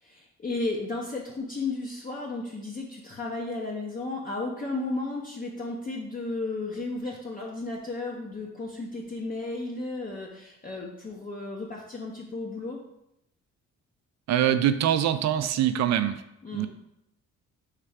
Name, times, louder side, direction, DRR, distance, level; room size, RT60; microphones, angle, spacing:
voice 1, 0.0-12.8 16.4-16.7, left 2 dB, 30° left, -2 dB, 0.7 m, -34 dB
voice 2, 14.3-16.2 16.5-16.7, right 10 dB, 65° right, 11 dB, 0.4 m, -24 dB
3.4 x 3.3 x 4.8 m, 0.82 s
cardioid pair, 90°, 30 cm